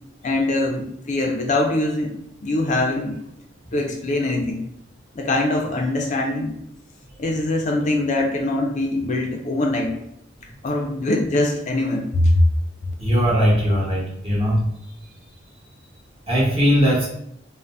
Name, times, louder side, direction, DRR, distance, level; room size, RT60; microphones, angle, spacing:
voice 1, 0.2-2.1 2.4-3.2 3.7-4.6 5.2-6.5 7.2-9.9 10.6-12.4, left 2 dB, 40° left, 2 dB, 0.4 m, -22 dB
voice 2, 13.0-14.6 16.3-17.1, equal, 30° right, -6 dB, 1.0 m, -19 dB
2.6 x 2.0 x 3.3 m, 0.75 s
head